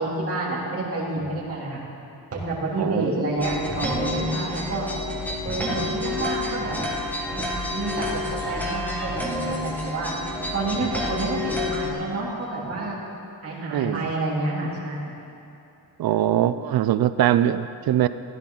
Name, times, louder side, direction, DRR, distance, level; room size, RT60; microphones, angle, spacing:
voice 1, 0.0-1.8 2.3-4.9 5.4-6.8 7.3-10.1 10.5-13.0 13.4-15.1, right 2 dB, 35° right, -7 dB, 2.8 m, -29 dB
sound 1, 3.4-11.9, left 2 dB, 5° left, 1.4 m, -29 dB
voice 2, 13.6-14.1 16.0-18.1, right 11 dB, 65° right, 13 dB, 0.5 m, -22 dB
16.0 x 11.0 x 3.8 m, 2.7 s
wide cardioid pair, 165°, 40 cm